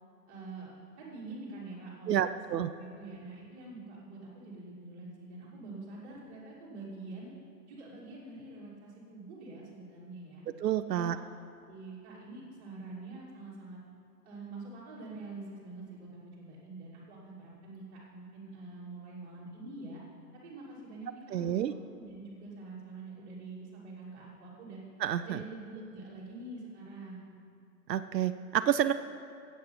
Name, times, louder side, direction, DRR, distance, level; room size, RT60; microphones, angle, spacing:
voice 1, 0.3-2.2 2.5-7.3 7.7-10.4 11.0-11.3 11.7-13.8 14.2-20.0 20.4-24.8 25.2-27.2, right 3 dB, 15° right, -7 dB, 2.7 m, -46 dB
voice 2, 2.1-2.7 10.6-11.2 21.3-21.7 25.0-25.4 27.9-28.9, right 10 dB, 85° right, 10 dB, 0.7 m, -29 dB
14.5 x 8.5 x 6.0 m, 2.4 s
hypercardioid pair, 170°, 48 cm